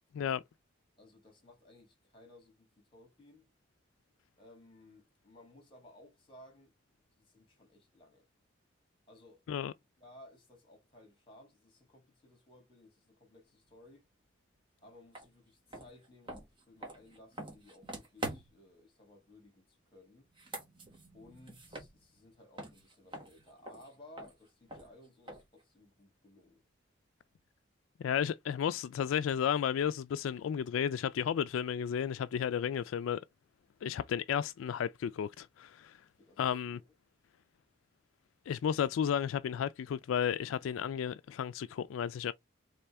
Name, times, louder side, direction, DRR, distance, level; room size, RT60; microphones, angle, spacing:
voice 1, 1.0-3.5 4.4-6.7 7.2-8.3 9.1-9.4 10.0-14.1 14.8-20.3 21.1-26.6 36.2-36.9, left 1 dB, 25° left, 2.5 m, -58 dB
sound 1, 15.1-15.3 15.7-18.7 20.2-22.3 22.6-25.6, right 1 dB, 25° right, 1.3 m, -45 dB
voice 2, 28.0-33.2 33.8-36.0 36.4-36.8 38.5-42.3, left 8 dB, 90° left, 0.3 m, -33 dB
4.3 x 3.3 x 3.4 m
head